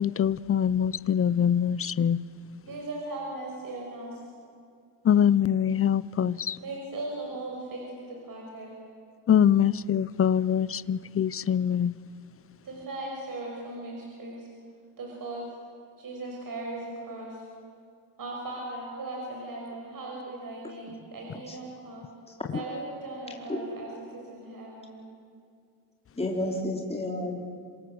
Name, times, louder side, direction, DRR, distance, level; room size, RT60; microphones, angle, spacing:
voice 1, 0.0-2.2 5.0-6.6 9.3-11.9, left 9 dB, 30° left, 0.6 m, -24 dB
voice 2, 2.7-4.3 6.6-8.8 12.6-14.5 15.0-15.5 16.0-17.4 18.2-22.1 22.5-25.0, right 2 dB, 45° right, 5.9 m, -38 dB
voice 3, 26.2-27.4, left 1 dB, 15° left, 4.1 m, -30 dB
27.0 x 26.5 x 7.9 m
cardioid pair, 110°, 46 cm